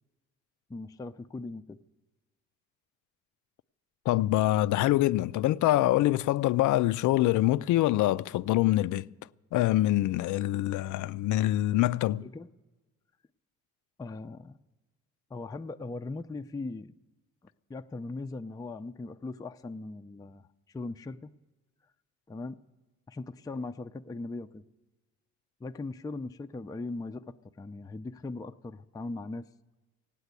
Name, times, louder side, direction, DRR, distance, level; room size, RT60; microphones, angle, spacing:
voice 1, 0.7-1.8 12.2-12.5 14.0-14.6 15.3-16.9 17.7-21.3 22.3-22.6 23.1-24.6 25.6-29.4, left 3 dB, 10° left, 0.4 m, -39 dB
voice 2, 4.1-9.1 9.5-12.3, left 15 dB, 80° left, 0.4 m, -25 dB
16.5 x 9.1 x 8.1 m
cardioid pair, 90°, 30 cm